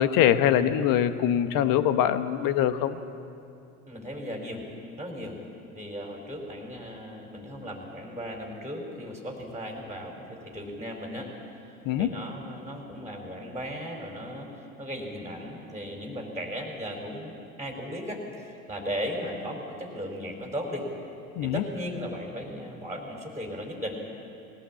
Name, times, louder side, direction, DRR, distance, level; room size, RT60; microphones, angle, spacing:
voice 1, 0.0-3.0 11.8-12.1 21.3-21.6, left 10 dB, 50° left, 11 dB, 1.3 m, -23 dB
voice 2, 3.9-4.6 5.0-5.4 5.7-11.3 12.0-20.9 21.4-24.0, equal, 5° right, 0 dB, 4.4 m, -36 dB
20.5 x 18.0 x 8.7 m, 2.6 s
hypercardioid pair, 80°, 44 cm